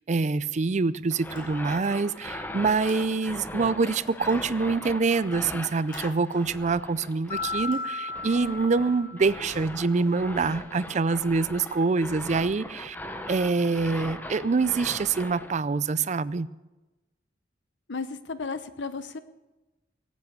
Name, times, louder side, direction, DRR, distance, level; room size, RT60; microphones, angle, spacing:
voice 1, 0.1-13.0 13.3-16.5, right 4 dB, 40° right, 17 dB, 0.4 m, -25 dB
sound 1, 1.1-15.5, left 1 dB, 10° left, 0.9 m, -39 dB
sound 2, 1.3-2.1 2.4-3.6 4.1-7.0 7.3-8.4 9.2-12.4, left 2 dB, 50° left, 4.0 m, -54 dB
Mallet percussion, 7.3-9.7, left 3 dB, 35° left, 1.9 m, -35 dB
voice 2, 17.9-19.2, left 4 dB, 75° left, 12 dB, 0.9 m, -34 dB
18.0 x 8.4 x 7.2 m, 1.1 s
head